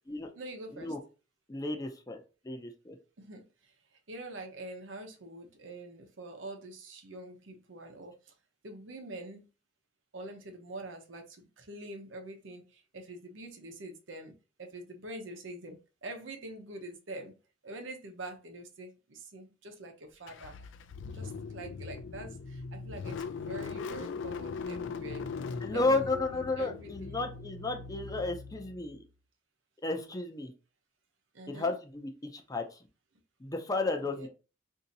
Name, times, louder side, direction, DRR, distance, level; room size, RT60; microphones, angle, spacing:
voice 1, 0.3-0.9 3.2-8.3 8.6-9.5 10.1-17.3 17.6-20.7 21.1-25.3 25.7-27.3 31.3-31.7 34.1-34.3, right 2 dB, 85° right, 0.8 m, -45 dB
voice 2, 1.5-2.2 2.4-3.0 25.6-29.0 29.8-30.5 31.5-32.9 33.4-34.3, left 3 dB, 20° left, 0.5 m, -33 dB
Car / Engine starting, 20.3-29.0, left 5 dB, 75° left, 0.3 m, -40 dB
2.7 x 2.7 x 3.9 m
head